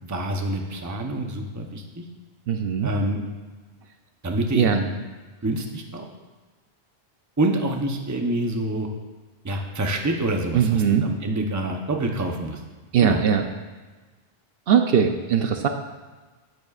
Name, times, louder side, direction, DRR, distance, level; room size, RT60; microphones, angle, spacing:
voice 1, 0.0-2.0 2.8-3.2 4.2-4.9 5.4-6.0 7.4-8.9 9.4-12.6 13.0-13.2, right 1 dB, 20° right, 3 dB, 0.7 m, -26 dB
voice 2, 2.5-2.9 4.5-4.8 10.5-11.1 12.9-13.4 14.7-15.7, right 8 dB, 70° right, 6 dB, 0.8 m, -20 dB
10.5 x 9.2 x 2.4 m, 1.3 s
omnidirectional pair, 1.1 m